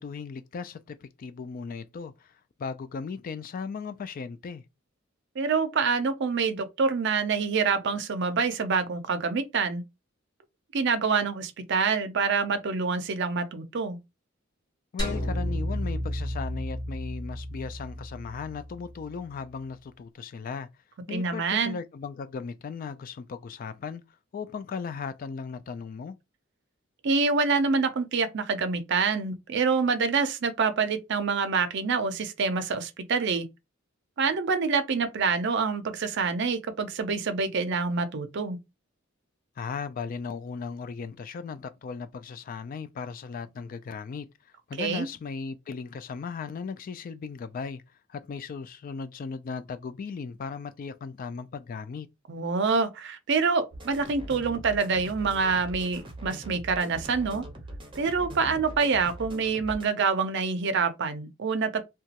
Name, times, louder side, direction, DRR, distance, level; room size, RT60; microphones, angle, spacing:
voice 1, 0.0-2.3 2.6-4.6 14.9-20.7 21.1-24.0 24.3-26.2 39.6-44.3 44.7-47.8 48.1-52.1, left 5 dB, 45° left, 0.3 m, -37 dB
voice 2, 5.4-9.8 10.7-14.0 21.1-21.8 27.0-33.5 34.2-38.6 44.8-45.1 52.3-57.5 58.0-61.8, right 5 dB, 60° right, 0.5 m, -26 dB
sound 1, 15.0-19.4, equal, 20° left, 1.6 m, -33 dB
sound 2, 53.7-59.9, right 1 dB, 25° right, 0.7 m, -42 dB
2.9 x 2.3 x 2.8 m
head